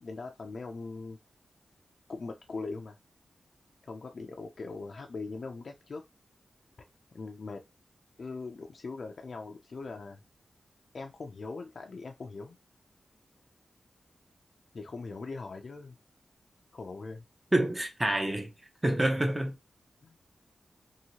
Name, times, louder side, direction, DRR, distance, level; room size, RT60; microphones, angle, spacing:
voice 1, 0.0-1.2 2.1-3.0 3.8-6.0 7.1-7.6 8.2-10.2 10.9-12.6 14.7-16.0 16.7-17.2 20.0-20.2, left 3 dB, 60° left, 0.4 m, -41 dB
voice 2, 17.5-18.5 18.8-19.5, right 1 dB, 20° right, 0.6 m, -27 dB
2.8 x 2.6 x 2.8 m
wide cardioid pair, 80°, 0 cm